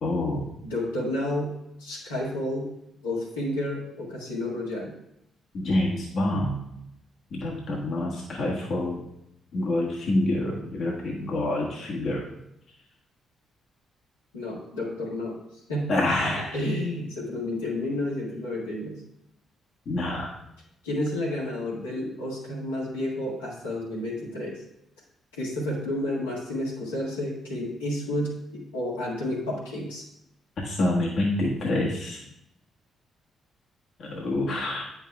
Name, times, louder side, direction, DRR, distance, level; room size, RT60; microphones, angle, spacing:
voice 1, 0.0-0.5 5.5-6.6 7.3-9.0 9.5-12.3 15.9-16.5 19.9-20.3 30.6-32.2 34.0-34.8, left 1 dB, 55° left, -2 dB, 1.3 m, -27 dB
voice 2, 0.6-1.5 1.8-2.7 3.0-5.0 14.3-15.4 15.7-19.0 20.8-24.6 25.3-30.0, left 1 dB, 90° left, -7 dB, 1.8 m, -31 dB
9.2 x 5.7 x 2.3 m, 0.81 s
hypercardioid pair, 45°, 0 cm